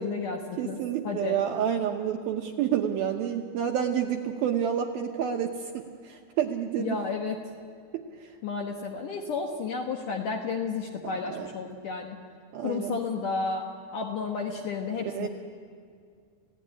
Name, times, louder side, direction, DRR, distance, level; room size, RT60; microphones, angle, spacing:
voice 1, 0.0-0.8 1.0-1.4 6.8-7.4 8.4-12.2 12.6-15.3, left 5 dB, 65° left, 2 dB, 2.1 m, -32 dB
voice 2, 0.6-7.0 7.9-8.3 11.3-11.5 12.5-13.0 15.0-15.3, right 9 dB, 75° right, 3 dB, 2.2 m, -29 dB
29.0 x 16.5 x 9.9 m, 2.2 s
omnidirectional pair, 5.4 m